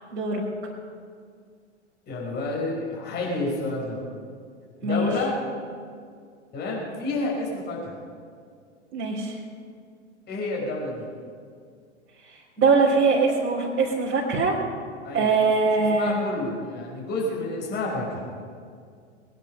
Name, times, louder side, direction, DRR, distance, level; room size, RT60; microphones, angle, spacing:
voice 1, 0.1-0.4 4.8-5.1 8.9-9.3 12.6-14.5 15.1-16.2, right 4 dB, 30° right, -6 dB, 3.3 m, -22 dB
voice 2, 2.1-4.0 4.8-5.3 6.5-7.9 10.3-11.0 15.0-15.3 15.6-18.3, left 2 dB, 30° left, -3 dB, 5.5 m, -30 dB
22.0 x 10.5 x 5.7 m, 2.2 s
figure-of-eight pair, 100°, 35 cm